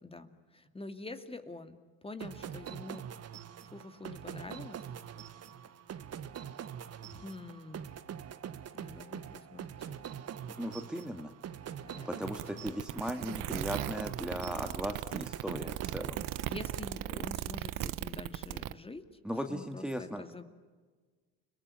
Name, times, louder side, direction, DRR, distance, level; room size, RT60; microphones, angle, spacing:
voice 1, 0.0-3.0 3.6-4.8 7.1-7.9 8.7-10.0 11.8-12.2 12.6-13.5 16.4-19.1 19.5-20.5, left 2 dB, 15° left, 9 dB, 2.3 m, -46 dB
sound 1, 2.2-17.5, right 8 dB, 45° right, 1.4 m, -44 dB
voice 2, 10.6-11.3 12.1-16.2 19.2-20.2, equal, ahead, 5 dB, 2.0 m, -37 dB
sound 2, 12.3-18.7, right 15 dB, 65° right, 1.0 m, -37 dB
30.0 x 19.0 x 9.9 m, 1.4 s
supercardioid pair, 85°, 35 cm